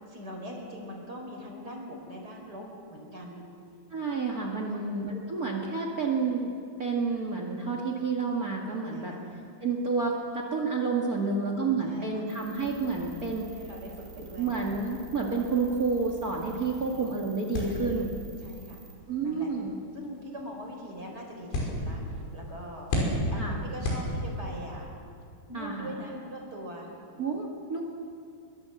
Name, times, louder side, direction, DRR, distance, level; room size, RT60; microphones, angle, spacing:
voice 1, 0.1-3.4 4.6-4.8 8.9-9.2 11.2-11.5 11.8-12.2 13.5-14.5 17.5-18.1 18.4-18.8 19.2-19.5 19.9-24.9 25.5-26.9, equal, 20° right, 1 dB, 4.5 m, -42 dB
voice 2, 3.9-6.5 6.8-9.1 9.6-13.5 14.2-18.1 19.1-19.7 23.4-23.6 25.5-25.9 27.2-27.8, right 4 dB, 60° right, 1 dB, 0.9 m, -30 dB
sound 1, 12.3-18.9, right 3 dB, 80° right, 5.5 m, -49 dB
sound 2, 17.5-24.7, left 1 dB, 85° left, 7.9 m, -34 dB
24.0 x 23.0 x 7.9 m, 2.4 s
omnidirectional pair, 5.4 m